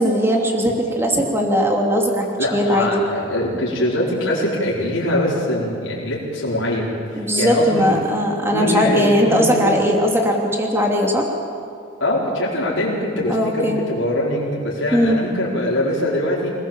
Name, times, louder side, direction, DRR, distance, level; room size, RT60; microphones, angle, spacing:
voice 1, 0.0-2.3 2.5-3.0 7.1-11.3 13.3-13.8 14.9-15.2, equal, 10° right, 0 dB, 2.8 m, -19 dB
voice 2, 2.4-6.9 7.4-8.0 8.5-9.8 12.0-16.5, left 1 dB, 80° left, -6 dB, 4.9 m, -22 dB
27.0 x 19.5 x 7.5 m, 2.5 s
head